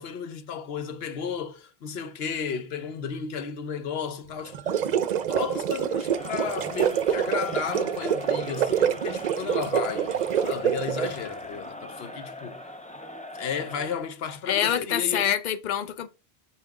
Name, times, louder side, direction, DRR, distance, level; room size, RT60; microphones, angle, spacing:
voice 1, 0.0-4.8 5.3-12.6 13.3-15.2, left 6 dB, 75° left, 1.0 m, -33 dB
sound 1, 4.5-11.3, right 9 dB, 55° right, 0.5 m, -26 dB
Crowd, 6.0-14.0, left 1 dB, 10° left, 0.7 m, -40 dB
voice 2, 14.5-16.1, left 9 dB, 50° left, 0.7 m, -25 dB
5.8 x 4.2 x 4.7 m
omnidirectional pair, 1.0 m